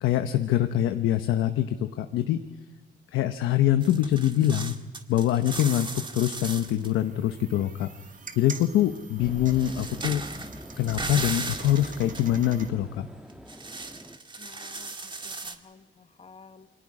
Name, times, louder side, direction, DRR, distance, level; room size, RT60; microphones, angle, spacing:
voice 1, 0.0-2.4 3.1-4.8 5.1-7.9 8.4-10.2 10.8-13.1, left 12 dB, 90° left, 8 dB, 1.0 m, -24 dB
sound 1, 3.8-6.9 8.8-8.9 9.5-12.3 13.3-15.5, right 3 dB, 25° right, 1.9 m, -37 dB
sound 2, 5.5-12.7, right 5 dB, 40° right, 2.1 m, -46 dB
sound 3, 9.2-14.2, equal, 5° right, 2.0 m, -43 dB
voice 2, 14.4-16.7, left 5 dB, 30° left, 9 dB, 1.5 m, -52 dB
29.0 x 23.5 x 5.0 m, 1.3 s
cardioid pair, 90°, 20 cm